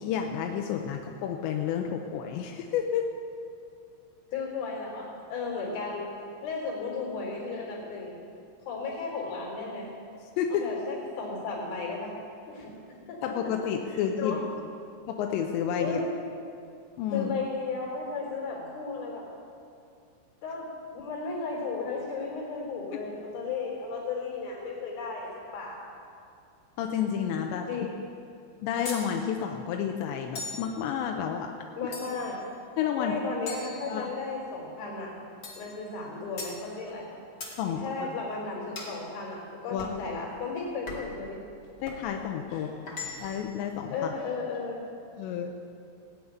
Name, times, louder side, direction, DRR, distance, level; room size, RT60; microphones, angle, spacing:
voice 1, 0.0-3.0 10.4-10.6 13.2-14.4 15.1-16.0 17.0-17.3 26.8-27.7 28.6-31.5 32.8-33.2 33.9-34.1 37.6-38.1 39.7-39.9 41.8-42.9 43.2-44.1 45.2-45.5, left 8 dB, 85° left, 3 dB, 3.0 m, -30 dB
voice 2, 4.3-6.2 6.4-8.2 8.7-9.9 10.5-12.2 12.5-12.8 13.1-13.7 14.2-14.4 15.8-16.1 17.1-19.3 20.4-25.8 27.7-27.8 31.8-32.4 33.0-35.1 35.6-37.1 37.6-41.4 42.5-42.7 43.9-44.8, left 4 dB, 60° left, -3 dB, 5.6 m, -34 dB
sound 1, 28.8-29.1 30.3-30.7 31.9-32.4 33.5-34.4 35.4-35.7 36.4-36.6 37.4-37.6 38.7-39.0 39.8-40.0 40.9-41.2 41.8-42.1 42.9-43.5, left 3 dB, 40° left, 1.6 m, -39 dB
19.0 x 7.3 x 9.3 m, 2.5 s
omnidirectional pair, 5.3 m